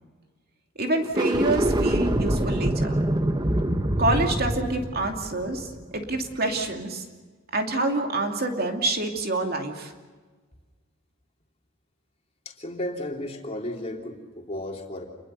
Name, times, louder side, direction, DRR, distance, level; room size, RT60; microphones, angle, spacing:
voice 1, 0.8-3.0 4.0-7.1 7.5-9.9, right 2 dB, 45° right, 3 dB, 2.7 m, -27 dB
sound 1, 1.0-6.3, right 1 dB, 20° right, 1.1 m, -25 dB
voice 2, 12.4-15.0, left 1 dB, 30° left, 0 dB, 3.3 m, -34 dB
28.5 x 21.5 x 6.9 m, 1.4 s
head